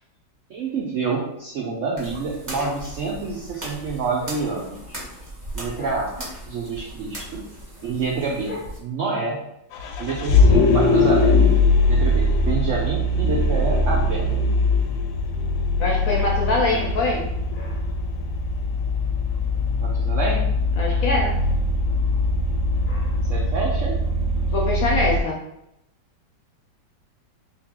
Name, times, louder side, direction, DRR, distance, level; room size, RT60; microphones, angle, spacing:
voice 1, 0.5-5.0 5.5-6.1 6.5-7.5 7.8-9.4 10.0-11.5 11.9-14.3 19.8-20.5 23.3-24.0, right 4 dB, 85° right, -2 dB, 0.6 m, -27 dB
sound 1, 2.0-8.8, right 1 dB, 30° right, 1.1 m, -37 dB
Vehicle, 9.7-25.2, left 2 dB, 90° left, 1.3 m, -21 dB
voice 2, 15.8-17.3 17.5-17.8 20.8-21.4 22.9-23.1 24.5-25.4, left 2 dB, 65° left, -2 dB, 0.8 m, -24 dB
3.4 x 2.7 x 3.5 m, 0.82 s
omnidirectional pair, 2.0 m